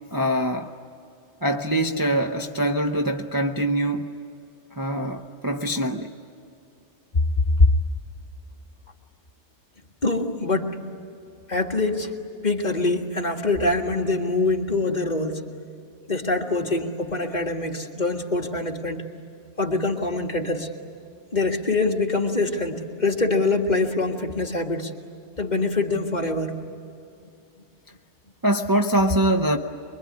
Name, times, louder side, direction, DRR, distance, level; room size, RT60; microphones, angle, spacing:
voice 1, 0.1-0.7 1.4-4.1 4.8-6.1 28.4-29.6, right 1 dB, 20° right, 0.9 m, -23 dB
voice 2, 10.0-10.9 11.5-12.1 12.4-15.4 16.1-19.0 19.6-20.7 21.3-24.9 25.4-26.6, left 2 dB, 40° left, 2.0 m, -24 dB
25.0 x 23.5 x 9.8 m
omnidirectional pair, 1.2 m